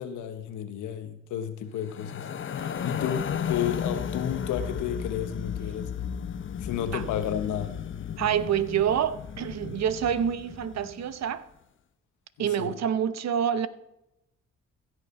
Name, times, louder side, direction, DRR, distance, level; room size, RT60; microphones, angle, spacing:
voice 1, 0.0-2.3 2.8-5.9 6.6-7.7 12.4-12.8, left 9 dB, 85° left, 1.1 m, -32 dB
sound 1, 1.8-11.1, left 8 dB, 40° left, 0.7 m, -34 dB
voice 2, 2.6-2.9 6.9-7.0 8.2-11.4 12.4-13.7, right 9 dB, 60° right, 0.8 m, -27 dB
15.5 x 6.5 x 4.3 m
supercardioid pair, 65°, 30 cm